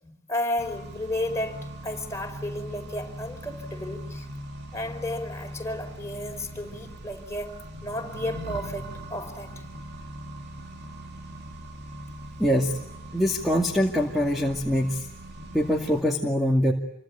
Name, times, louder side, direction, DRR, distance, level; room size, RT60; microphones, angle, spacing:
voice 1, 0.0-4.3 4.7-9.5, left 1 dB, 15° left, 4.5 m, -33 dB
Accelerating revving vroom, 0.6-16.0, right 1 dB, 55° right, 3.1 m, -40 dB
voice 2, 12.4-12.8 13.1-15.1 15.5-16.7, equal, ahead, 2.4 m, -23 dB
28.5 x 24.5 x 8.3 m
head